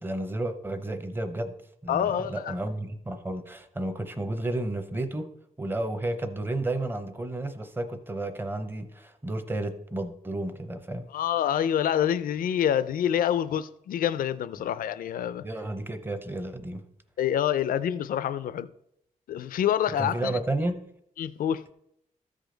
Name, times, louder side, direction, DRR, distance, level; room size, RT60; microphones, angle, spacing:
voice 1, 0.0-1.5 1.8-5.3 5.6-11.0 15.4-16.8 20.0-20.8, right 2 dB, 15° right, 0.7 m, -32 dB
voice 2, 1.9-2.5 11.1-15.4 17.2-18.7 19.3-20.4 21.2-21.6, left 10 dB, 85° left, 0.4 m, -27 dB
13.5 x 5.0 x 3.9 m
wide cardioid pair, 150°, 14 cm